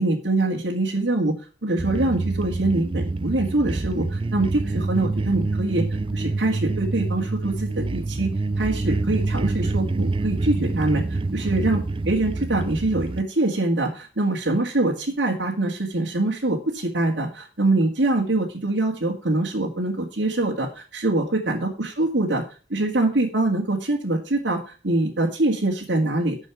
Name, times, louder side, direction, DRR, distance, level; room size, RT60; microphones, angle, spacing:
voice 1, 0.0-1.4 1.6-5.8 6.1-8.3 8.6-11.8 12.1-22.4 22.7-26.4, right 2 dB, 70° right, -2 dB, 1.9 m, -24 dB
sound 1, 1.8-13.2, right 3 dB, 30° right, 0.4 m, -26 dB
10.5 x 6.5 x 6.0 m, 0.35 s
head